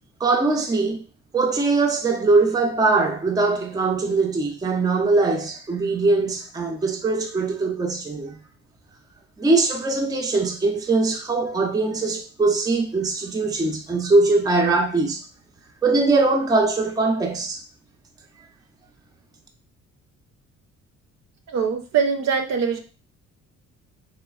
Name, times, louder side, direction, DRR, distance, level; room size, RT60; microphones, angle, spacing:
voice 1, 0.2-1.0 1.3-8.4 9.4-15.2 15.8-17.6, right 3 dB, 15° right, 0.4 m, -21 dB
voice 2, 21.5-22.8, right 6 dB, 60° right, 0.6 m, -22 dB
3.1 x 2.1 x 2.3 m
cardioid pair, 90°, 30 cm